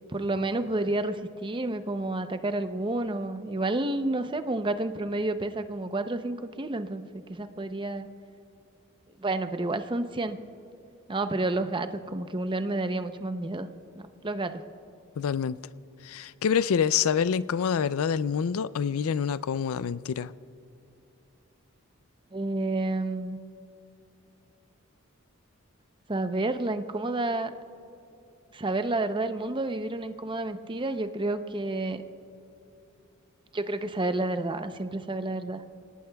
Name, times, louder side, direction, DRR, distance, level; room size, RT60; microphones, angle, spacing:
voice 1, 0.1-7.0 7.3-8.1 9.2-10.4 11.1-13.7 14.0-14.6 22.3-23.4 26.1-27.5 28.5-32.0 33.5-35.6, right 2 dB, 25° right, 0.6 m, -30 dB
voice 2, 15.2-15.6 16.0-20.3, left 7 dB, 80° left, 0.4 m, -26 dB
28.0 x 18.5 x 2.3 m
head